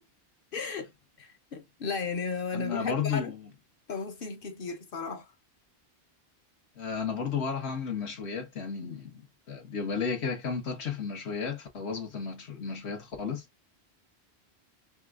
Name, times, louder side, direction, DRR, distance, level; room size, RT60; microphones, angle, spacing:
voice 1, 0.5-0.9 1.2-3.3 3.9-5.3, left 4 dB, 60° left, 0.9 m, -35 dB
voice 2, 2.5-3.5 6.8-13.4, left 6 dB, 80° left, 1.5 m, -33 dB
5.3 x 2.4 x 2.4 m
omnidirectional pair, 1.1 m